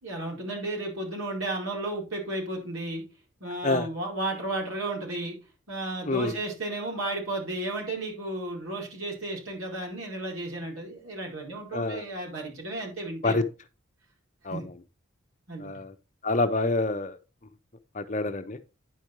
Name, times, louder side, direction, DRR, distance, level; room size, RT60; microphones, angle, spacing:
voice 1, 0.0-3.0 3.4-5.4 5.7-13.4 14.5-14.6 15.5-15.8, right 2 dB, 75° right, 4.7 m, -33 dB
voice 2, 11.7-12.0 13.2-13.4 14.4-14.7 15.6-15.9 16.2-17.2 17.9-18.6, left 2 dB, 35° left, 0.7 m, -27 dB
10.5 x 5.2 x 4.6 m
head